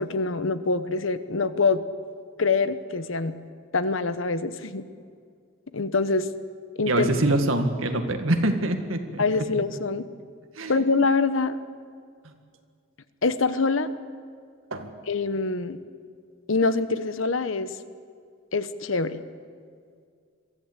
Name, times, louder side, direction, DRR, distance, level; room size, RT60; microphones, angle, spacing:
voice 1, 0.0-1.8 2.4-3.4 3.7-4.8 5.7-6.3 6.8-7.1 9.2-10.0 10.7-11.6 13.2-13.9 15.1-15.8 16.5-17.8 18.5-19.2, left 4 dB, 70° left, 12 dB, 1.0 m, -24 dB
voice 2, 6.9-9.2 10.6-10.7 14.7-14.9, right 1 dB, 85° right, 6 dB, 2.0 m, -24 dB
23.0 x 14.5 x 8.2 m, 2.2 s
head